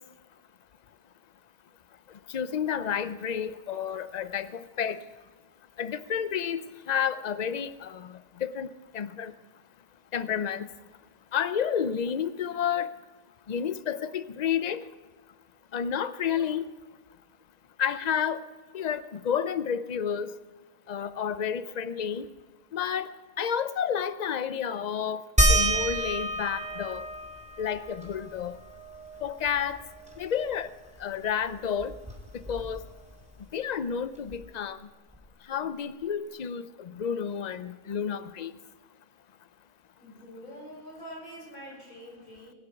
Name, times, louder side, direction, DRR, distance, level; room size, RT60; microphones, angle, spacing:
voice 1, 2.3-5.0 5.8-8.7 8.9-9.3 10.1-10.7 11.3-12.9 13.5-14.8 15.7-16.6 17.8-18.4 18.7-20.3 20.9-22.3 22.7-23.1 23.4-25.2 25.5-27.0 27.6-28.6 29.2-29.8 30.2-30.7 31.0-31.9 32.3-32.8 33.5-34.8 35.5-38.5, left 8 dB, 55° left, 14 dB, 0.4 m, -30 dB
sound 1, 25.4-30.5 30.9-31.0 31.3-33.0 34.3-34.4 35.1-35.2, right 1 dB, 5° right, 2.3 m, -30 dB
voice 2, 40.0-42.5, equal, 90° left, -5 dB, 6.7 m, -45 dB
21.5 x 8.2 x 5.9 m, 1.4 s
omnidirectional pair, 1.4 m